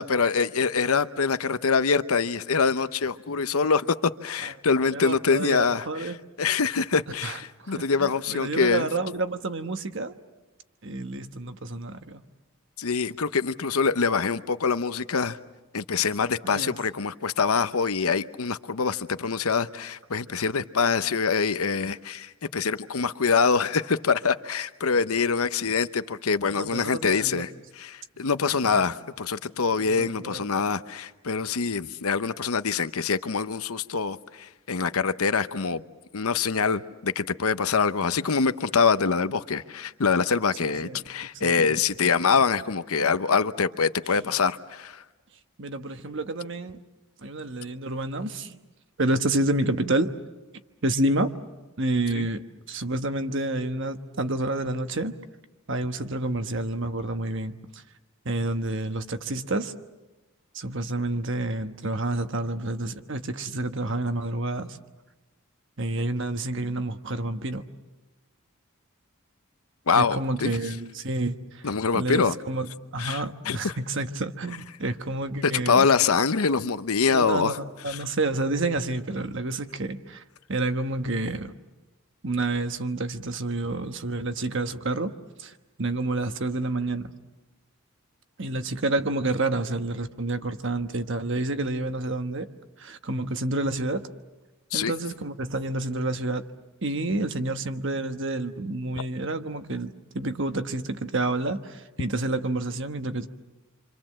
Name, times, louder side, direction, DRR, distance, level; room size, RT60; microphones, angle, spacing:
voice 1, 0.0-6.1 6.4-8.9 12.8-15.4 15.7-35.8 36.1-45.0 52.1-52.3 69.9-70.5 71.6-72.4 73.0-73.7 75.4-77.6 77.9-78.0 94.7-94.9, left 5 dB, 75° left, 0.8 m, -25 dB
voice 2, 4.9-6.2 7.2-10.2 10.8-12.2 16.4-16.7 26.5-27.4 28.6-28.8 29.7-30.5 40.6-41.8 44.1-44.3 45.6-46.8 47.2-48.6 49.0-50.1 50.8-51.3 51.8-52.4 52.7-55.1 55.7-57.8 58.2-59.7 60.5-64.8 65.8-67.7 69.9-71.6 71.9-72.7 72.9-75.9 77.1-80.2 80.5-81.5 82.2-85.1 85.4-85.5 85.8-87.1 88.4-92.5 92.8-94.1 94.7-96.4 96.8-103.3, right 2 dB, 55° right, 1.2 m, -29 dB
28.5 x 26.0 x 7.6 m
head